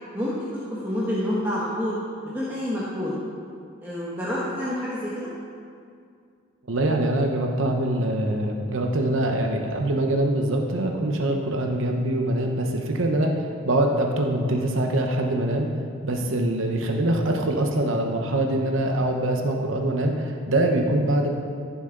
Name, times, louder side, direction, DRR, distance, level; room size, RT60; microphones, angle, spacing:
voice 1, 0.8-2.0 2.2-3.1 3.8-5.3, left 1 dB, 10° right, -8 dB, 1.3 m, -28 dB
voice 2, 6.7-13.3 13.6-15.7 16.0-21.3, right 1 dB, 65° right, 2 dB, 0.9 m, -24 dB
14.5 x 7.0 x 3.9 m, 2.3 s
head